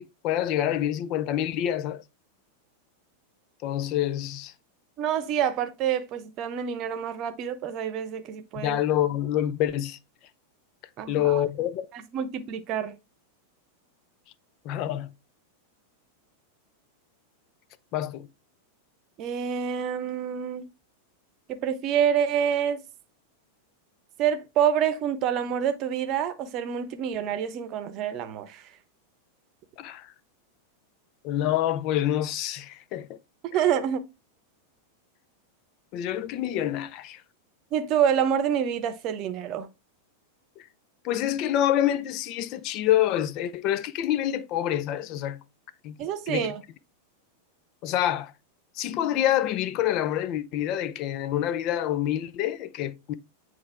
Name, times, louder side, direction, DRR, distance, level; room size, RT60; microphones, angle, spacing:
voice 1, 0.0-2.0 3.6-4.5 8.5-10.0 11.1-11.9 14.6-15.1 17.9-18.3 29.8-30.1 31.2-33.2 35.9-37.2 40.6-40.7 41.0-45.4 45.8-46.0 46.3-46.5 47.8-48.3 48.7-53.1, left 12 dB, 40° left, 0.5 m, -27 dB
voice 2, 5.0-8.8 11.0-11.4 11.9-13.0 19.2-20.7 21.5-22.8 24.2-28.7 33.4-34.0 37.7-39.7 46.0-46.6, right 8 dB, 35° right, 0.9 m, -27 dB
8.7 x 3.4 x 3.4 m
figure-of-eight pair, 90°, 0 cm